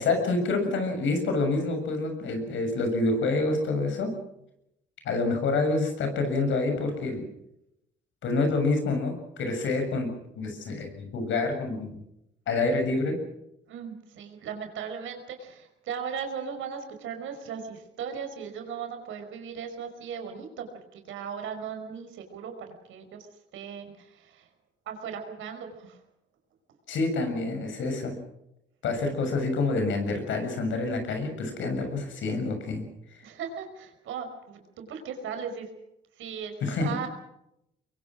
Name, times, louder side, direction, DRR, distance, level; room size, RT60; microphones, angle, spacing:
voice 1, 0.0-4.1 5.1-7.2 8.2-11.9 12.5-13.2 26.9-28.1 28.8-32.8 36.6-36.9, left 3 dB, 75° left, 6 dB, 7.3 m, -27 dB
voice 2, 13.7-23.3 23.5-24.5 24.9-26.0 33.2-35.7 36.2-37.1, right 7 dB, 80° right, 6 dB, 5.3 m, -37 dB
24.0 x 22.5 x 6.3 m, 0.83 s
cardioid pair, 90°, 20 cm